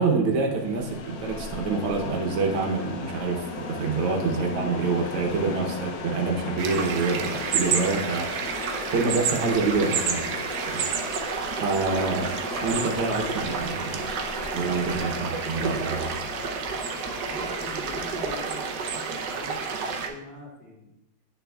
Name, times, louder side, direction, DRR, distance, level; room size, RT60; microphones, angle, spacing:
voice 1, 0.0-10.3 10.7-10.9 11.6-14.1 14.5-16.2, right 4 dB, 90° right, 1 dB, 1.8 m, -27 dB
sound 1, 0.6-18.6, left 4 dB, 70° left, 0.9 m, -37 dB
sound 2, 6.6-20.1, right 5 dB, 65° right, 1.1 m, -30 dB
voice 2, 16.6-20.9, equal, 25° right, -6 dB, 2.6 m, -44 dB
9.7 x 6.8 x 2.3 m, 0.92 s
omnidirectional pair, 2.3 m